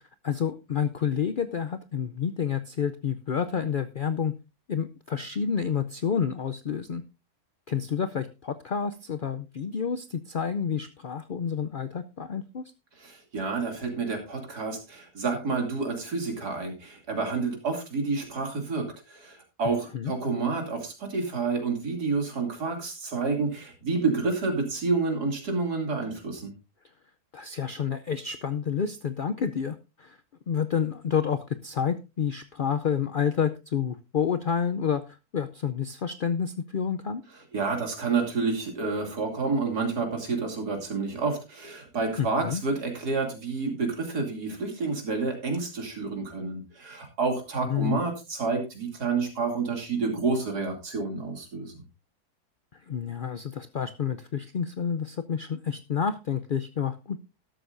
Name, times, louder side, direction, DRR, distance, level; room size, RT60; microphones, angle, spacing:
voice 1, 0.2-4.3 4.7-7.0 7.7-12.6 19.9-20.1 27.3-30.2 30.5-35.0 35.3-37.2 42.2-42.6 47.7-48.0 52.9-57.2, left 7 dB, 80° left, 11 dB, 0.4 m, -29 dB
voice 2, 13.0-26.5 37.5-51.8, right 4 dB, 75° right, 3 dB, 3.3 m, -29 dB
12.5 x 12.5 x 2.6 m, 0.26 s
omnidirectional pair, 1.7 m